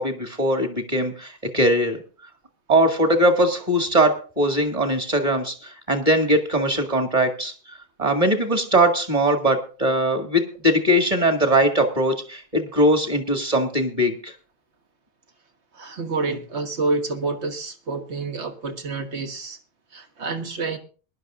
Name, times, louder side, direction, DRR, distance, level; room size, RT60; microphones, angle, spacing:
voice 1, 0.0-2.0 2.7-14.3, right 1 dB, 30° right, 4 dB, 2.0 m, -21 dB
voice 2, 15.7-19.6 19.9-20.8, right 3 dB, 80° right, 5 dB, 1.7 m, -28 dB
22.5 x 11.0 x 2.5 m, 0.37 s
omnidirectional pair, 1.1 m